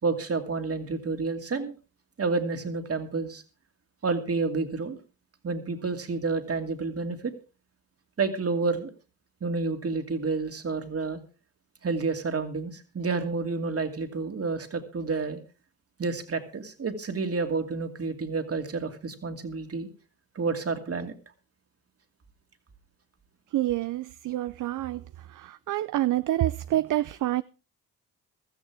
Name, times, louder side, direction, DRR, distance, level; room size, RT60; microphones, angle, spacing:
voice 1, 0.0-1.7 2.2-3.4 4.0-5.0 5.4-7.3 8.2-8.9 9.4-11.2 11.8-15.4 16.0-19.9 20.3-21.1, right 4 dB, 40° right, 2.5 m, -29 dB
voice 2, 23.5-25.0 25.3-27.4, right 14 dB, 60° right, 0.6 m, -27 dB
16.0 x 13.5 x 3.5 m
supercardioid pair, 60°, 37 cm